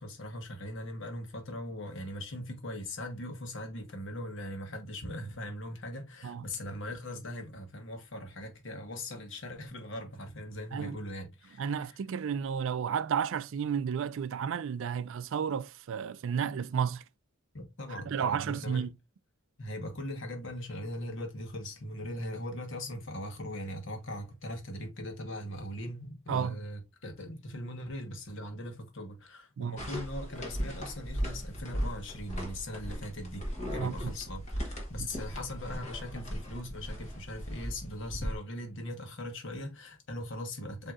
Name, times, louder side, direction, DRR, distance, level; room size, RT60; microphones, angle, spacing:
voice 1, 0.0-12.0 17.5-18.9 19.6-40.9, left 1 dB, 60° left, 1.2 m, -40 dB
voice 2, 11.6-17.0 17.9-18.9 26.3-26.6 29.6-29.9 33.8-34.1 35.0-35.1, right 7 dB, 65° right, 0.4 m, -32 dB
sound 1, 29.8-38.4, equal, 35° left, 1.2 m, -37 dB
7.4 x 2.8 x 2.4 m
head